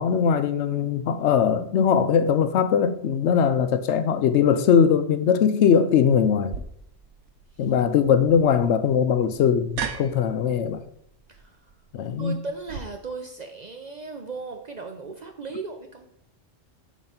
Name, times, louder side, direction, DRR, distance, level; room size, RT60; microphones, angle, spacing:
voice 1, 0.0-6.5 7.6-10.8 11.9-12.4, left 7 dB, 70° left, 0.8 m, -21 dB
sound 1, 6.5-12.8, right 7 dB, 75° right, 1.0 m, -39 dB
voice 2, 11.3-11.6 12.2-16.1, right 4 dB, 50° right, 0.6 m, -36 dB
7.5 x 3.1 x 5.6 m
omnidirectional pair, 1.3 m